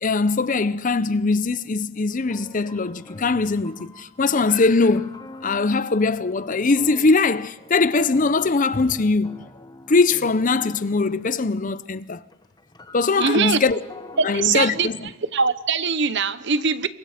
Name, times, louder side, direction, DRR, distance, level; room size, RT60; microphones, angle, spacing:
voice 1, 0.0-9.4 9.9-12.2 12.9-13.8 14.2-14.9, left 3 dB, 40° left, 0.7 m, -21 dB
sound 1, 1.4-1.5 2.3-11.8 12.0-16.0, left 1 dB, 20° left, 1.1 m, -45 dB
voice 2, 13.2-13.6 14.2-14.9 15.3-16.9, right 5 dB, 55° right, 1.0 m, -21 dB
28.0 x 23.5 x 5.1 m
head